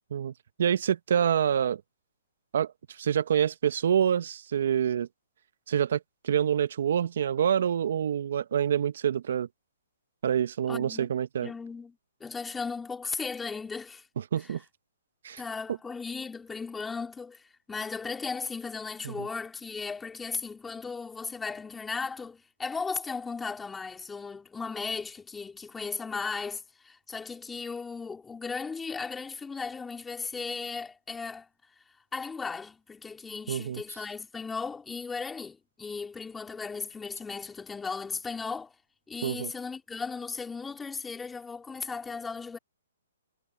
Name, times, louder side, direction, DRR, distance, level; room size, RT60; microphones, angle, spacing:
voice 1, 0.6-1.8 2.5-5.1 5.7-9.5 10.2-11.5 14.3-14.6 15.2-15.4 19.0-19.1 33.5-33.8 39.2-39.5, right 9 dB, 65° right, 0.8 m, -26 dB
voice 2, 10.7-11.1 11.4-14.1 14.4-14.6 15.4-31.5 32.1-38.7 39.1-42.6, left 4 dB, 10° left, 3.7 m, -36 dB
hypercardioid pair, 145°, 0 cm